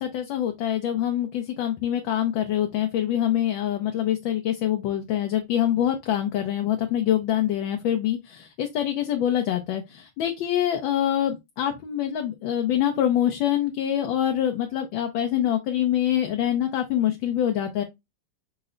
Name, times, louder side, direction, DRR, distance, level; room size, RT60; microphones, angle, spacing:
voice 1, 0.0-17.8, left 11 dB, 85° left, 1.4 m, -25 dB
5.7 x 2.1 x 3.7 m
omnidirectional pair, 2.1 m